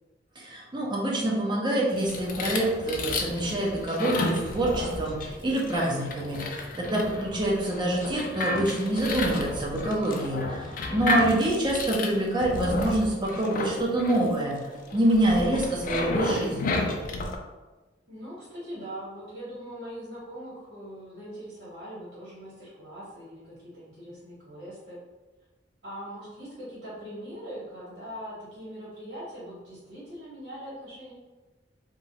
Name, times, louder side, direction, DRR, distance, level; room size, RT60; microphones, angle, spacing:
voice 1, 0.4-16.8, right 1 dB, 25° right, -2 dB, 0.6 m, -26 dB
sound 1, 1.9-17.4, left 2 dB, 50° left, 0.3 m, -32 dB
voice 2, 18.1-25.0 25.8-31.1, equal, 80° right, -9 dB, 1.2 m, -41 dB
3.0 x 2.2 x 2.7 m, 1.2 s
head